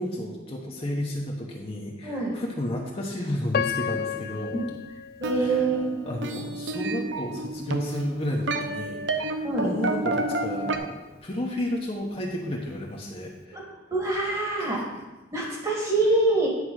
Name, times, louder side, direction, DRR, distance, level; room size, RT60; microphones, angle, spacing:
voice 1, 0.0-4.6 5.3-5.7 6.1-13.6 14.6-14.8, left 1 dB, 30° left, -1 dB, 1.0 m, -32 dB
voice 2, 2.0-2.3 4.5-4.7 5.2-6.0 9.4-9.7 13.5-13.6 13.9-14.8 15.3-16.5, right 2 dB, 25° right, -3 dB, 1.7 m, -25 dB
Piano, 3.5-6.5 7.1-7.2 7.9-8.1, left 8 dB, 50° left, 0.3 m, -32 dB
sound 1, 5.2-10.8, right 2 dB, 75° right, 0.8 m, -30 dB
10.0 x 4.7 x 6.3 m, 1.1 s
head